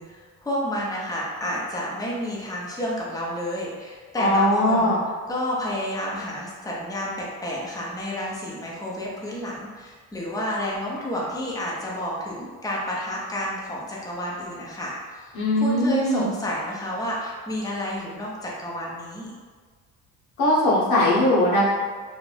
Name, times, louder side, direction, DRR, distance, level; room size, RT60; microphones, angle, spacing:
voice 1, 0.0-5.0 5.3-19.4, equal, 10° left, -5 dB, 0.7 m, -30 dB
voice 2, 4.2-5.0 15.3-16.3 20.4-21.7, left 1 dB, 85° left, -7 dB, 1.0 m, -20 dB
2.5 x 2.1 x 3.2 m, 1.5 s
supercardioid pair, 70°, 37 cm